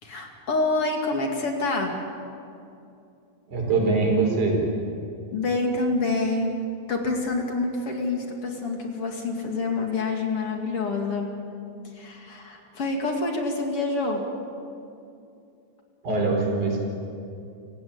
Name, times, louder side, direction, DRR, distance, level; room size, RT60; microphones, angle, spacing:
voice 1, 0.0-1.9 5.3-6.5 6.9-11.3 11.9-14.3, left 3 dB, 50° left, 2 dB, 3.2 m, -27 dB
voice 2, 3.5-4.6 16.0-16.8, right 3 dB, 80° right, 0 dB, 6.3 m, -23 dB
28.0 x 16.5 x 8.7 m, 2.6 s
omnidirectional pair, 3.4 m